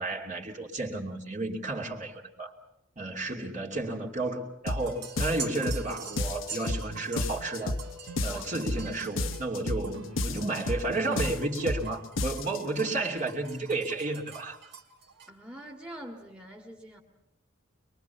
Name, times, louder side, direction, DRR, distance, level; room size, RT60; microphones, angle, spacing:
voice 1, 0.0-2.5 3.0-7.8 8.2-14.6, right 2 dB, 40° right, -1 dB, 2.8 m, -32 dB
sound 1, 4.7-4.9 5.2-5.9 6.2-6.9 7.2-7.9 8.2-8.9 9.2-9.9 10.2-10.9 11.2-11.9 12.2-12.6, left 2 dB, 80° left, 1.0 m, -31 dB
sound 2, 4.8-15.3, right 5 dB, 60° right, 2.8 m, -45 dB
sound 3, 5.0-12.0, right 1 dB, 90° right, 2.1 m, -45 dB
voice 2, 15.3-17.0, right 1 dB, 5° right, 2 dB, 2.0 m, -44 dB
23.5 x 23.0 x 7.0 m, 0.89 s
head